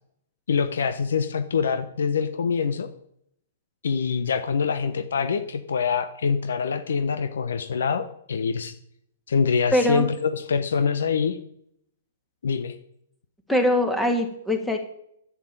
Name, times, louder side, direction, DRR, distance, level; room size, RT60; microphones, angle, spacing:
voice 1, 0.5-2.9 3.8-8.7 9.3-11.4 12.4-12.7, left 6 dB, 80° left, 10 dB, 1.2 m, -25 dB
voice 2, 9.7-10.0 13.5-14.8, left 1 dB, 5° left, 5 dB, 2.0 m, -22 dB
9.7 x 8.8 x 9.0 m, 0.72 s
hypercardioid pair, 155°, 0 cm